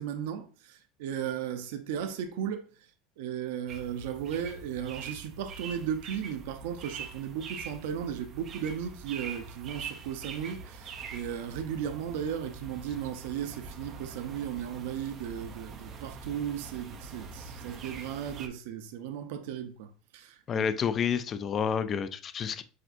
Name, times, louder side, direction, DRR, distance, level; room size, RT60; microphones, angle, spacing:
voice 1, 0.0-2.7 3.2-20.7, right 9 dB, 75° right, 0.7 m, -36 dB
sound 1, 3.7-18.5, right 5 dB, 30° right, 0.6 m, -44 dB
voice 2, 20.5-22.6, left 7 dB, 25° left, 0.3 m, -29 dB
7.6 x 2.6 x 2.5 m
supercardioid pair, 155°, 0 cm